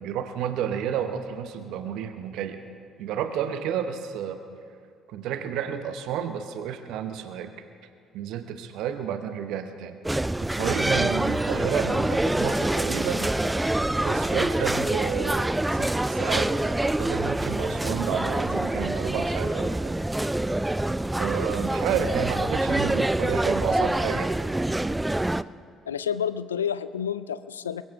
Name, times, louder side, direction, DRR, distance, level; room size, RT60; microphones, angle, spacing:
voice 1, 0.0-2.6 3.0-4.4 5.1-7.5 8.1-10.0 10.6-13.3 14.0-16.5 16.8-19.9 21.2-24.3, right 8 dB, 65° right, 9 dB, 0.8 m, -31 dB
sound 1, 10.0-25.4, right 1 dB, 10° right, 0.4 m, -26 dB
voice 2, 25.9-27.8, left 8 dB, 85° left, 16 dB, 0.3 m, -29 dB
22.0 x 15.5 x 3.5 m, 2.3 s
hypercardioid pair, 50°, 0 cm